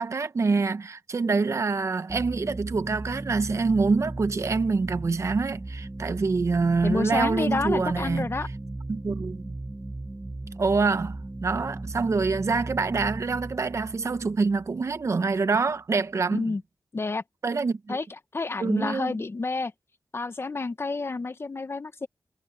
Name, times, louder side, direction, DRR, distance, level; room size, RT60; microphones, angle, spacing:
voice 1, 0.0-8.3 8.9-9.5 10.6-16.5 17.4-18.0 18.6-19.2, right 4 dB, 65° right, 1.1 m, -26 dB
sound 1, 2.1-15.4, right 2 dB, 25° right, 0.6 m, -37 dB
voice 2, 6.8-8.5 16.3-16.6 16.9-17.2 17.9-18.0 18.3-19.7 20.1-22.1, left 3 dB, 50° left, 1.2 m, -29 dB
wide cardioid pair, 65°, 5 cm